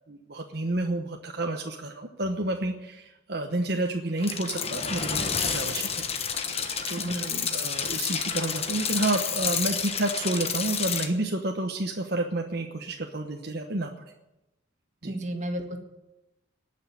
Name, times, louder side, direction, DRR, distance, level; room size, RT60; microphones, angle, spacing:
voice 1, 0.1-6.0 6.9-13.9 15.0-15.1, right 2 dB, 55° right, 2 dB, 1.1 m, -30 dB
sound 1, 4.2-11.1, left 6 dB, 30° left, 1.2 m, -30 dB
voice 2, 7.0-7.5 15.1-15.8, right 1 dB, 40° right, 5 dB, 1.7 m, -33 dB
19.0 x 6.5 x 9.6 m, 0.96 s
head